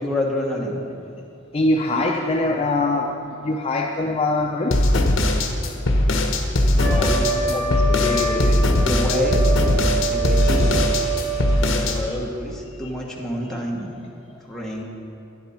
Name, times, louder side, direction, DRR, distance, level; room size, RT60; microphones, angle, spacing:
voice 1, 0.0-0.8 6.7-7.6 7.9-8.5 8.8-9.4 10.1-10.8 11.5-13.9 14.5-14.8, left 1 dB, ahead, -3 dB, 1.4 m, -28 dB
voice 2, 1.5-3.1 3.4-5.1 7.5-7.8 10.7-10.8 11.8-12.2 12.7-12.9, left 2 dB, 30° left, 1 dB, 0.5 m, -23 dB
sound 1, 4.7-12.0, left 1 dB, 65° left, 1.0 m, -19 dB
Trumpet, 6.8-11.8, right 3 dB, 35° right, 3.1 m, -26 dB
12.0 x 10.5 x 4.3 m, 2.7 s
head